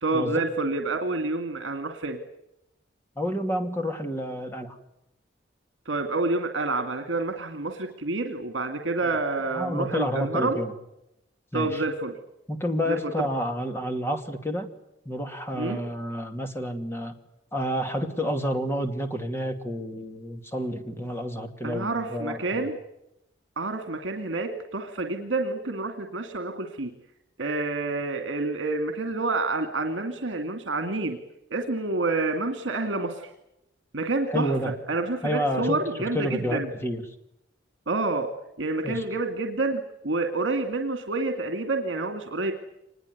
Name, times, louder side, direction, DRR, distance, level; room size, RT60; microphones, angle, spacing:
voice 1, 0.0-2.2 5.9-10.6 11.5-12.1 12.9-13.0 15.6-15.8 21.6-22.8 23.6-26.9 27.4-31.2 31.5-33.3 33.9-36.7 37.9-38.3 38.6-42.5, right 3 dB, 75° right, 6 dB, 2.3 m, -28 dB
voice 2, 3.2-4.8 9.5-10.7 11.5-11.8 12.5-14.7 15.1-17.1 17.5-22.6 34.3-34.7 35.2-35.8 36.1-37.0 38.8-39.0, equal, 15° left, 5 dB, 2.5 m, -29 dB
25.5 x 21.0 x 9.5 m, 0.89 s
head